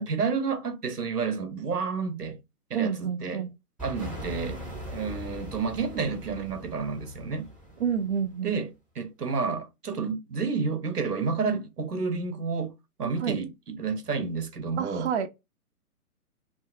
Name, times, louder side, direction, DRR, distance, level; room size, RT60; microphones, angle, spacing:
voice 1, 0.0-2.4 2.7-3.4 3.8-4.6 4.9-7.5 8.4-8.7 9.0-12.7 13.0-15.1, right 5 dB, 90° right, 0.9 m, -30 dB
voice 2, 2.7-3.5 7.8-8.6 13.2-13.4 14.8-15.3, right 7 dB, 50° right, 0.5 m, -29 dB
sound 1, 3.8-8.5, equal, 5° right, 0.7 m, -40 dB
2.6 x 2.4 x 2.4 m
figure-of-eight pair, 130°, 46 cm